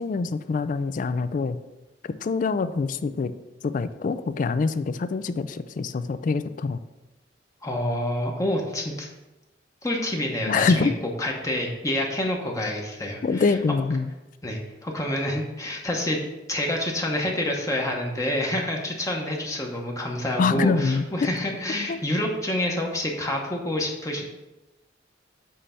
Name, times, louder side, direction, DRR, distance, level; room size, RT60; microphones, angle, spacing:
voice 1, 0.0-1.6 2.1-3.3 3.6-6.8 10.5-10.9 13.2-14.1 20.4-21.0 21.9-22.0, left 4 dB, 45° left, 12 dB, 0.3 m, -25 dB
voice 2, 7.6-9.1 9.8-13.5 14.4-16.2 16.5-24.2, left 1 dB, 20° left, 0 dB, 0.9 m, -28 dB
7.6 x 3.3 x 5.6 m, 1.0 s
head